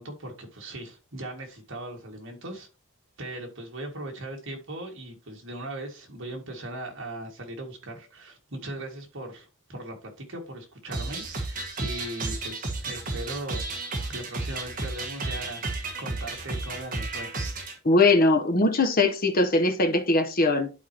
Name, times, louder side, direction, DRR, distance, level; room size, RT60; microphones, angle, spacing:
voice 1, 0.0-2.7 3.2-15.7 16.0-17.4, right 1 dB, 60° right, 2.0 m, -39 dB
sound 1, 10.9-17.7, right 2 dB, 40° right, 1.5 m, -33 dB
voice 2, 17.8-20.7, left 2 dB, 45° left, 0.9 m, -21 dB
11.5 x 4.5 x 2.9 m
head